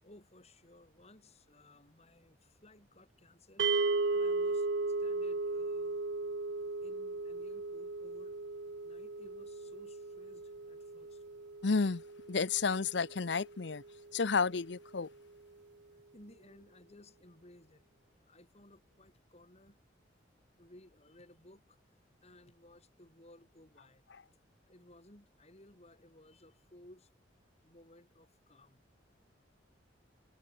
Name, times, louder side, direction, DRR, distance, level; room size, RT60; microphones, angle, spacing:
voice 1, 0.0-6.0 6.8-11.2 15.9-17.9 18.2-19.8 20.6-24.0 24.7-27.1 27.6-28.8 29.1-29.2, left 1 dB, 35° left, 4.6 m, -59 dB
sound 1, 3.6-13.9, right 3 dB, 65° right, 1.0 m, -36 dB
voice 2, 11.6-12.0 12.3-13.8 14.1-15.1, left 4 dB, 65° left, 0.7 m, -31 dB
head